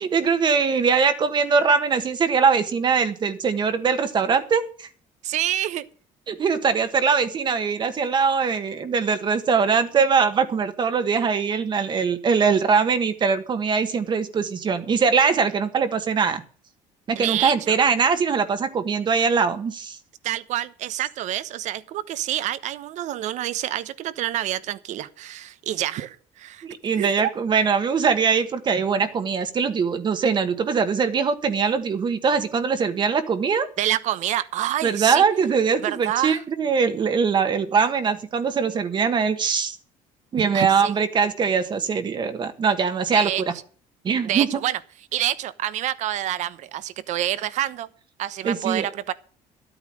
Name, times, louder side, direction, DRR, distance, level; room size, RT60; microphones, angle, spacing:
voice 1, 0.0-4.9 6.3-16.4 17.1-20.0 26.6-33.7 34.8-39.8 40.3-43.5 44.0-44.5 48.4-48.9, right 5 dB, 35° right, 9 dB, 1.4 m, -22 dB
voice 2, 5.2-5.8 17.2-17.8 20.2-26.6 27.0-27.3 33.8-35.2 35.8-36.4 40.5-40.9 43.1-43.4 44.2-44.8 45.1-47.9 48.2-49.1, right 12 dB, 60° right, 16 dB, 1.0 m, -27 dB
13.0 x 9.1 x 6.3 m, 0.43 s
cardioid pair, 140°, 14 cm